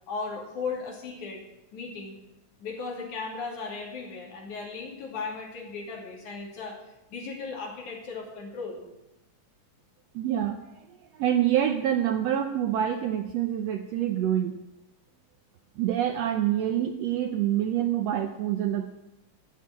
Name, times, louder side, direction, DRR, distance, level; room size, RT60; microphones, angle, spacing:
voice 1, 0.1-1.4 1.7-2.2 2.6-6.8 7.1-8.8, left 4 dB, 80° left, -1 dB, 4.1 m, -36 dB
voice 2, 10.2-10.8 11.2-14.6 15.8-18.9, right 11 dB, 70° right, 4 dB, 1.8 m, -26 dB
13.5 x 6.6 x 9.5 m, 0.92 s
omnidirectional pair, 3.4 m